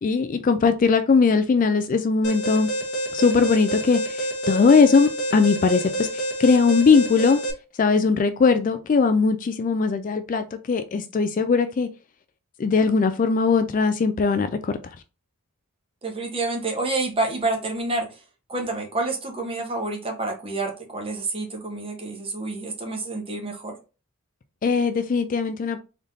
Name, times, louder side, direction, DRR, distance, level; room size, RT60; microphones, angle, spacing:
voice 1, 0.0-2.7 3.1-7.4 7.8-11.9 12.6-14.7 24.6-25.8, left 5 dB, 35° left, 0.3 m, -20 dB
Alarm, 2.2-7.5, right 1 dB, 55° left, 1.0 m, -28 dB
voice 2, 16.0-18.2 18.5-23.8, right 2 dB, 25° right, 1.0 m, -28 dB
3.8 x 3.5 x 2.6 m
head